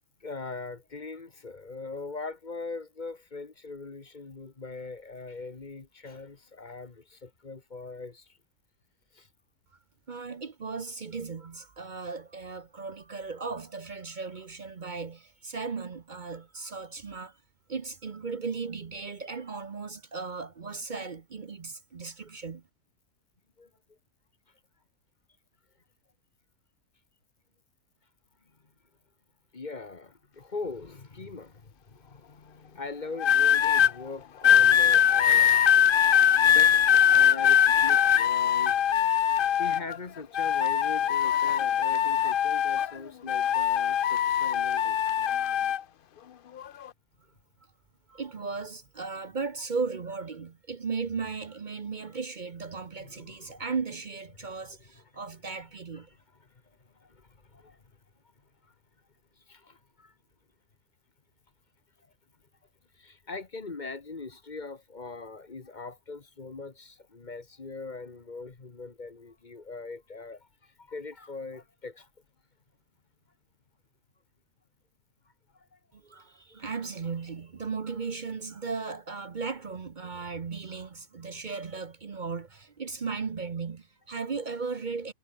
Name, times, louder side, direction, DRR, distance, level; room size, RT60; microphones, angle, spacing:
voice 1, 0.2-8.4 9.1-9.3 23.6-24.0 29.5-35.6 36.2-38.8 39.1-45.0 52.9-53.6 54.4-54.9 56.4-57.9 58.6-58.7 59.4-60.1 62.9-72.1 75.5-75.8 76.5-76.6, left 3 dB, 30° left, 1.5 m, -42 dB
voice 2, 10.1-17.4 17.7-22.6 48.1-56.1 75.9-85.1, right 4 dB, 40° right, 0.8 m, -36 dB
sound 1, 33.2-33.9 34.4-40.0 40.3-43.0 43.3-45.8 46.6-46.9, left 9 dB, 60° left, 0.5 m, -22 dB
omnidirectional pair, 1.6 m